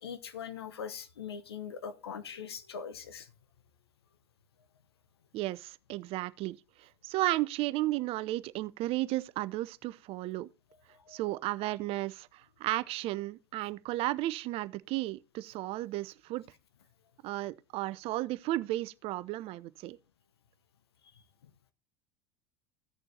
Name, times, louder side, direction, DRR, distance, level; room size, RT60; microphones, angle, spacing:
voice 1, 0.0-3.3 11.1-11.2, left 7 dB, 80° left, 0.9 m, -41 dB
voice 2, 5.3-10.5 11.1-16.4 17.2-20.0, right 17 dB, 50° right, 0.5 m, -34 dB
16.0 x 6.7 x 2.7 m
hypercardioid pair, 80°, 13 cm